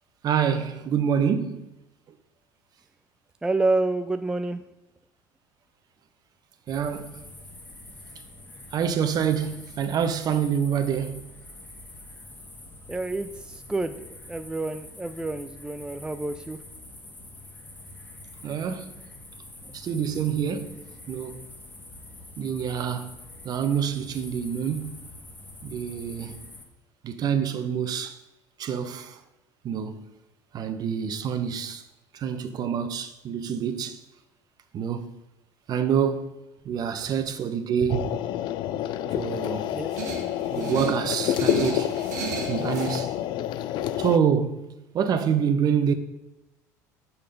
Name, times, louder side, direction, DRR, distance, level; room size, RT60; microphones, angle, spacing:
voice 1, 0.2-1.7 6.7-7.2 8.7-11.3 18.4-18.9 19.7-21.4 22.4-23.2 23.4-25.1 25.6-26.4 27.0-28.2 28.6-29.2 29.6-30.0 30.5-31.8 32.1-34.0 34.7-35.2 35.7-36.3 36.6-38.2 39.1-39.7 40.5-42.0 42.5-43.1 44.0-45.9, right 7 dB, 45° right, 0.9 m, -27 dB
voice 2, 3.4-4.6 12.9-16.6 19.7-19.8 38.6-38.8 39.7-40.0, right 2 dB, 10° right, 0.4 m, -29 dB
sound 1, 6.7-26.6, left 2 dB, 20° left, 1.6 m, -45 dB
sound 2, 37.9-44.2, left 11 dB, 55° left, 0.4 m, -28 dB
sound 3, 39.9-43.0, right 5 dB, 85° right, 1.3 m, -34 dB
6.6 x 5.7 x 5.3 m
hypercardioid pair, 75°, 9 cm